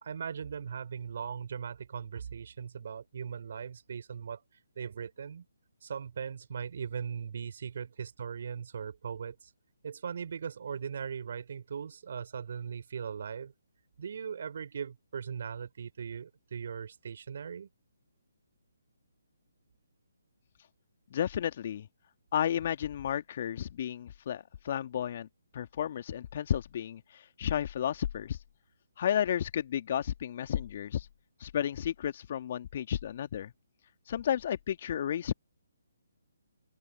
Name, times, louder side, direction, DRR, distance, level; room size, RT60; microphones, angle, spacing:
voice 1, 0.0-4.4 4.8-5.5 5.8-9.5 9.8-13.5 14.0-17.7, right 7 dB, 55° right, 3.9 m, -39 dB
voice 2, 21.1-21.9 22.3-25.3 25.5-28.4 29.0-31.1 31.4-33.5 34.1-35.3, left 10 dB, 45° left, 2.1 m, -32 dB
open air
figure-of-eight pair, 145°, 0 cm